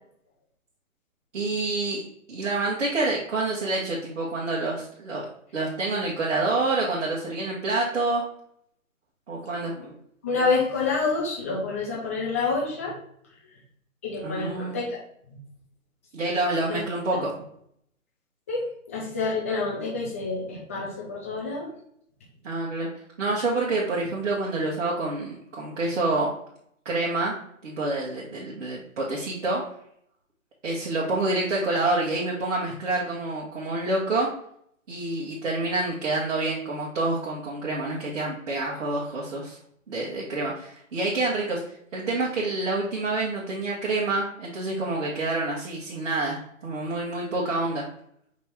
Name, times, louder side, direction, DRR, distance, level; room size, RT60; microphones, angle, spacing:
voice 1, 1.3-2.0 2.3-5.3 5.5-8.2 9.3-9.7 14.2-14.8 16.1-17.3 22.4-22.9 23.2-26.3 26.8-27.3 27.6-29.6 30.6-34.3 34.9-39.6 39.9-41.6 41.9-47.8, right 2 dB, 60° right, -4 dB, 1.3 m, -27 dB
voice 2, 10.2-12.9 14.0-15.0 15.3-15.4 16.7-16.8 17.1-17.2 18.5-21.7, left 4 dB, 10° left, -3 dB, 0.4 m, -28 dB
5.1 x 2.9 x 3.5 m, 0.68 s
figure-of-eight pair, 135°, 41 cm